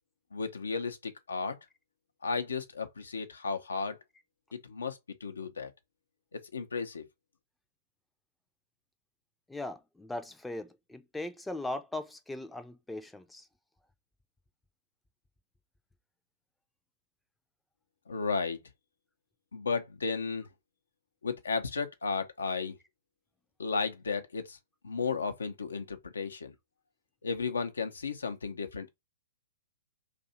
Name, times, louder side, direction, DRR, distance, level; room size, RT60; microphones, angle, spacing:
voice 1, 0.3-1.6 2.2-4.0 4.5-5.7 6.3-7.0 18.1-18.6 19.5-20.5 21.2-22.8 23.6-24.6 24.8-26.5 27.2-28.9, left 4 dB, 75° left, 0.7 m, -34 dB
voice 2, 9.5-13.5, left 2 dB, 5° left, 0.5 m, -39 dB
2.7 x 2.5 x 4.1 m
figure-of-eight pair, 115°, 0 cm